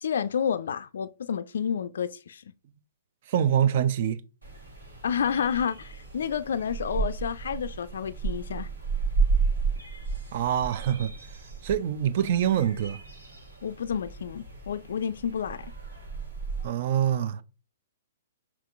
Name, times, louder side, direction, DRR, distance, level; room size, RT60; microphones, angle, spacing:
voice 1, 0.0-2.4 5.0-8.7 13.6-15.7, left 7 dB, 65° left, 0.3 m, -30 dB
voice 2, 3.3-4.2 10.3-11.1 11.6-13.0 16.6-17.4, right 9 dB, 50° right, 0.5 m, -25 dB
sound 1, 4.4-16.7, right 4 dB, 80° right, 1.7 m, -33 dB
5.8 x 2.9 x 2.4 m
figure-of-eight pair, 120°, 0 cm